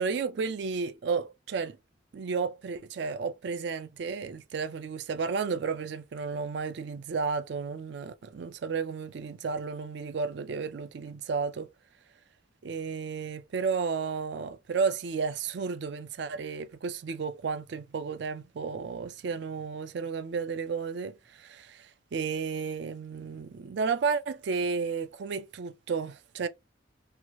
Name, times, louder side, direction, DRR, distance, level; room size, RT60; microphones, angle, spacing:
voice 1, 0.0-1.8 2.1-11.7 12.6-26.5, right 5 dB, 60° right, 0.4 m, -32 dB
2.8 x 2.3 x 2.8 m
head